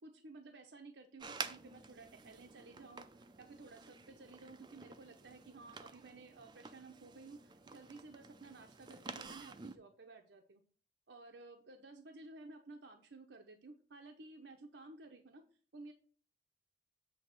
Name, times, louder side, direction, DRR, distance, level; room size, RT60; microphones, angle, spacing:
voice 1, 0.0-10.6 11.1-15.4 15.7-15.9, right 3 dB, 75° right, 4 dB, 0.8 m, -54 dB
sound 1, 1.2-9.7, right 4 dB, 25° right, 0.5 m, -50 dB
8.1 x 3.5 x 6.5 m, 0.41 s
head